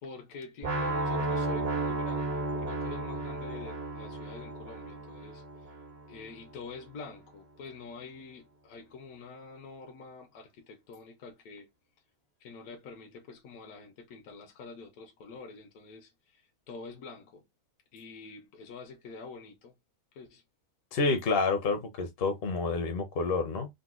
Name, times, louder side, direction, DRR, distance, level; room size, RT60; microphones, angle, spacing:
voice 1, 0.0-5.4 6.1-11.7 12.4-16.4 16.7-17.4 17.9-19.7 20.1-20.4, left 4 dB, 80° left, 1.1 m, -46 dB
sound 1, 0.6-6.6, right 2 dB, 40° right, 0.6 m, -34 dB
voice 2, 20.9-23.7, left 3 dB, 55° left, 0.7 m, -29 dB
3.9 x 2.1 x 2.3 m
omnidirectional pair, 1.5 m